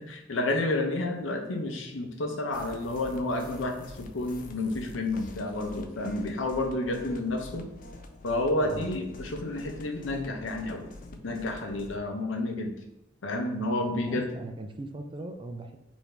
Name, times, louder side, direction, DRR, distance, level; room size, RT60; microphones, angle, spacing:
voice 1, 0.3-7.7 8.2-10.9 11.2-12.8 13.2-14.4, left 2 dB, 85° left, 3 dB, 0.7 m, -30 dB
sound 1, 2.5-12.0, left 2 dB, 45° left, 0.4 m, -46 dB
voice 2, 13.9-15.8, right 2 dB, 25° right, 5 dB, 0.3 m, -39 dB
4.8 x 2.6 x 3.3 m, 0.89 s
head